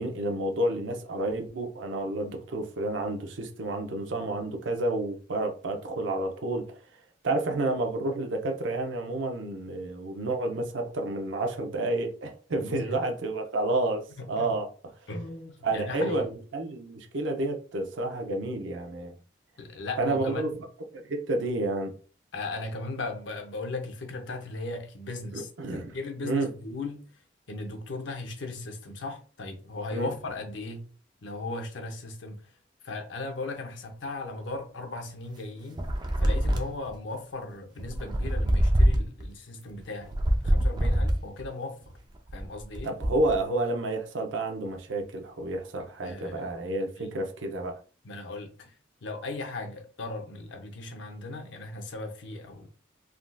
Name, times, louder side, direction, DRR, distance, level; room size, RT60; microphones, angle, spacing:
voice 1, 0.0-6.7 7.2-14.7 15.6-19.2 20.0-20.5 20.9-21.9 25.3-25.9 26.2-26.5 29.9-30.1 42.8-47.8, right 2 dB, 90° right, 0.6 m, -30 dB
voice 2, 12.5-13.0 14.2-14.5 15.1-16.3 19.6-20.6 22.3-25.5 25.9-27.0 27.5-30.9 31.2-32.4 32.8-35.9 36.2-42.0 42.3-42.9 46.0-46.5 47.0-47.1 48.0-48.7 49.0-52.7, left 2 dB, 80° left, 0.7 m, -37 dB
sound 1, 35.8-36.9 37.8-39.2 40.0-41.4 42.1-43.4, equal, 25° right, 0.4 m, -24 dB
3.6 x 2.4 x 2.2 m
head